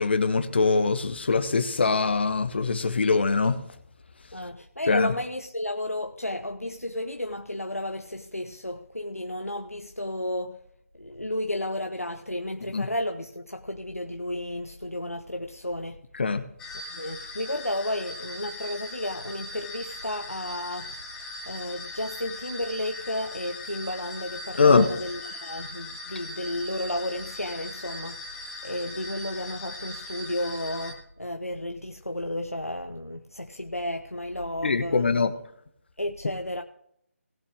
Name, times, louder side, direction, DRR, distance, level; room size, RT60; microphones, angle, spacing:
voice 1, 0.0-3.6 4.9-5.1 12.7-12.8 16.2-16.4 24.6-24.9 34.6-35.3, left 4 dB, 50° left, 1.2 m, -22 dB
voice 2, 4.3-10.6 11.0-16.0 16.9-20.9 21.5-28.2 28.6-35.1 36.0-36.6, left 1 dB, 90° left, 0.9 m, -32 dB
sound 1, 16.6-30.9, left 2 dB, 5° left, 1.1 m, -40 dB
18.5 x 6.9 x 3.6 m
figure-of-eight pair, 150°, 8 cm